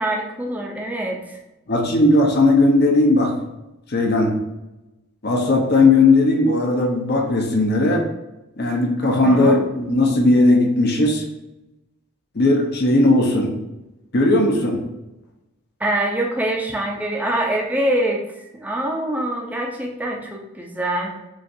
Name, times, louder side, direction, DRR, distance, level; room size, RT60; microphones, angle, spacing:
voice 1, 0.0-1.4 9.2-9.6 15.8-21.1, right 1 dB, 5° right, -1 dB, 0.6 m, -24 dB
voice 2, 1.7-3.3 3.9-4.3 5.2-8.1 8.6-11.2 12.3-13.5 14.1-14.8, left 2 dB, 45° left, 1 dB, 0.8 m, -17 dB
7.1 x 2.5 x 2.7 m, 0.97 s
head